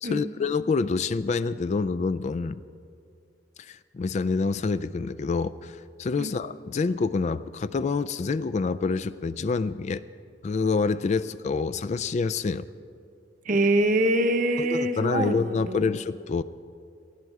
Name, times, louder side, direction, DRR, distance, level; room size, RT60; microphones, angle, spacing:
voice 1, 0.0-2.6 3.6-10.0 10.4-12.6 14.6-16.4, left 4 dB, 40° left, 15 dB, 0.3 m, -27 dB
voice 2, 13.4-15.9, right 1 dB, 50° right, 6 dB, 1.0 m, -24 dB
19.0 x 13.5 x 4.7 m, 2.4 s
head